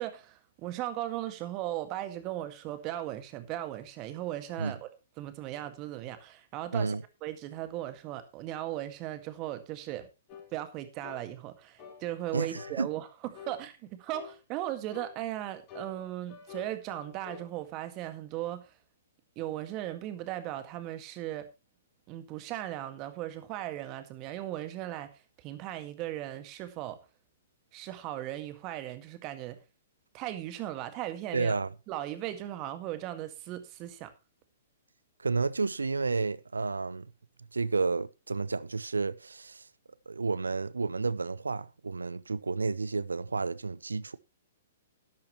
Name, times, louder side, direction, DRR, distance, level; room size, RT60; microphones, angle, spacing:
voice 1, 0.0-4.9 5.2-10.1 10.5-13.1 13.3-18.7 19.4-21.5 22.1-25.1 25.4-27.0 27.7-29.6 30.1-31.6 31.9-34.1, right 13 dB, 35° right, 1.8 m, -37 dB
sound 1, 10.3-10.5 11.0-11.3 11.8-12.0 12.6-12.8 13.3-13.6 14.1-14.4 14.9-15.1 15.7-17.5, left 7 dB, 35° left, 4.4 m, -47 dB
voice 2, 12.3-12.9 31.3-31.7 35.2-37.1 37.5-39.6 40.1-44.2, right 4 dB, 85° right, 0.6 m, -31 dB
13.0 x 10.5 x 3.1 m
figure-of-eight pair, 120°, 0 cm